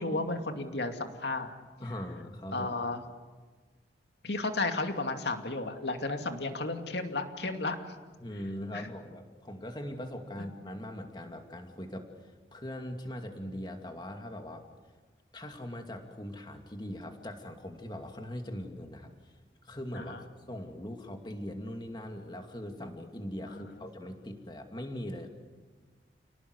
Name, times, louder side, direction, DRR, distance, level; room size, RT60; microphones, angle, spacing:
voice 1, 0.0-1.5 2.5-3.0 4.2-7.9 8.7-8.9 20.0-20.2 23.5-23.7, left 2 dB, 80° left, 5 dB, 2.4 m, -33 dB
voice 2, 1.8-2.7 8.2-12.1 12.5-14.6 15.3-19.3 19.6-25.3, left 1 dB, 25° left, 4 dB, 2.5 m, -41 dB
28.5 x 19.0 x 8.3 m, 1.4 s
head